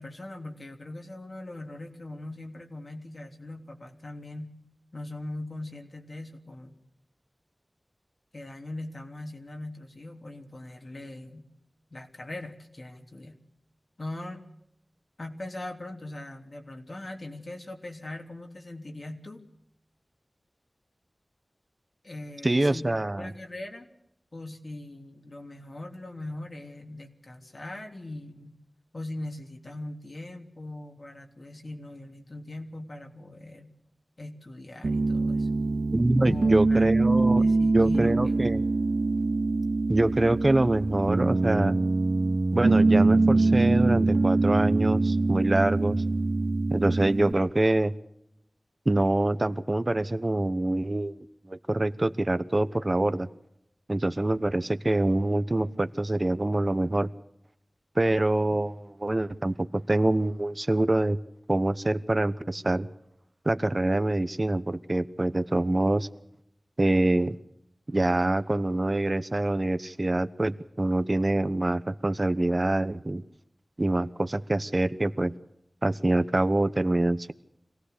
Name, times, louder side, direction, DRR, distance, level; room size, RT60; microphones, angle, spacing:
voice 1, 0.0-4.5 4.9-6.8 8.3-11.5 11.9-13.4 14.0-14.4 15.2-19.4 22.0-22.8 23.2-23.9 24.3-28.5 28.9-33.7 34.2-35.5 36.2-38.4, left 1 dB, 60° left, 3 dB, 3.2 m, -40 dB
voice 2, 22.4-23.3 35.9-37.4 37.7-38.6 39.9-41.8 42.5-46.0 46.7-47.9 48.9-51.2 51.5-53.3 53.9-57.1 57.9-59.5 59.9-61.2 61.5-62.9 63.4-66.1 66.8-67.4 67.9-73.2 73.8-75.3 75.8-77.3, right 2 dB, 40° right, 12 dB, 1.0 m, -25 dB
Piano, 34.8-47.3, right 3 dB, 85° right, 2.1 m, -24 dB
25.5 x 17.5 x 6.7 m, 0.76 s
wide cardioid pair, 65°, 0 cm